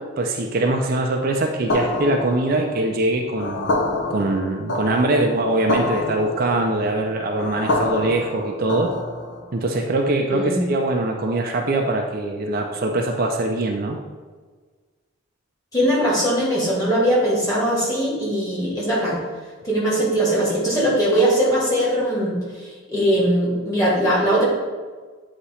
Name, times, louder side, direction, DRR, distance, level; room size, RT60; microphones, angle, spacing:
voice 1, 0.2-3.7 4.1-8.9 9.5-14.0, right 2 dB, 45° right, 2 dB, 0.4 m, -22 dB
sound 1, 1.7-9.5, left 2 dB, 60° left, 0.7 m, -27 dB
voice 2, 10.3-10.6 15.7-19.2 19.6-22.3 22.6-24.4, right 1 dB, 15° left, -6 dB, 1.7 m, -20 dB
8.2 x 2.9 x 4.2 m, 1.4 s
head